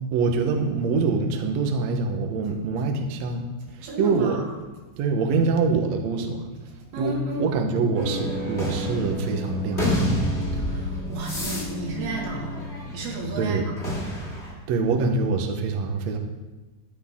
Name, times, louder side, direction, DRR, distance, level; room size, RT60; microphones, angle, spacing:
voice 1, 0.1-4.4 5.0-6.5 6.9-7.1 7.4-10.1 13.4-13.7 14.7-16.2, right 4 dB, 90° right, 4 dB, 1.5 m, -25 dB
voice 2, 3.8-4.7 6.9-7.6 10.5-13.8, right 2 dB, 65° right, -1 dB, 3.9 m, -33 dB
sound 1, 7.9-13.3 13.8-14.5, equal, 20° left, 2.2 m, -28 dB
13.5 x 11.0 x 3.7 m, 1.2 s
omnidirectional pair, 4.9 m